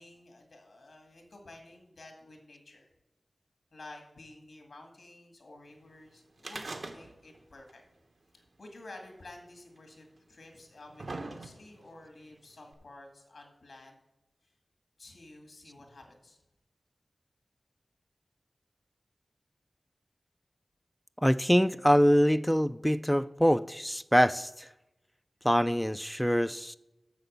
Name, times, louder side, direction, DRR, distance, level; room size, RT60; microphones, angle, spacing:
voice 1, 0.0-2.9 3.7-7.8 8.3-14.0 15.0-16.4, left 2 dB, 80° left, 3 dB, 2.1 m, -51 dB
sound 1, 6.4-7.4 7.7-7.8 8.8-8.9 9.8-9.9 10.5-11.9 12.7-12.8, right 2 dB, 65° right, 1.1 m, -41 dB
voice 2, 21.2-24.7 25.4-26.7, equal, 5° left, 12 dB, 0.3 m, -24 dB
8.3 x 6.6 x 6.6 m, 0.98 s
wide cardioid pair, 50°, 0 cm